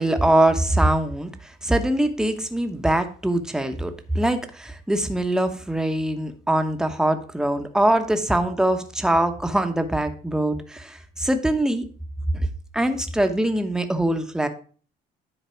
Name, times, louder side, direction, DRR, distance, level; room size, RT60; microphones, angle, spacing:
voice 1, 0.0-11.9 12.3-12.5 12.7-14.5, right 1 dB, 5° right, 7 dB, 1.0 m, -23 dB
10.5 x 4.0 x 5.7 m, 0.41 s
cardioid pair, 110°, 17 cm